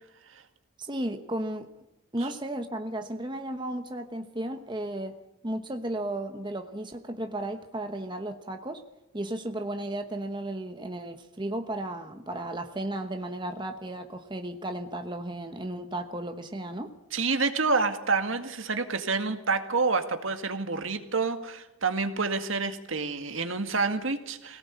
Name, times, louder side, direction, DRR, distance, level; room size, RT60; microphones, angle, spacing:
voice 1, 0.8-1.7 2.1-5.2 5.4-8.8 9.1-16.9, right 1 dB, 20° right, 6 dB, 1.1 m, -34 dB
voice 2, 17.1-24.6, right 4 dB, 70° right, 7 dB, 2.0 m, -28 dB
24.0 x 18.0 x 8.3 m, 0.94 s
head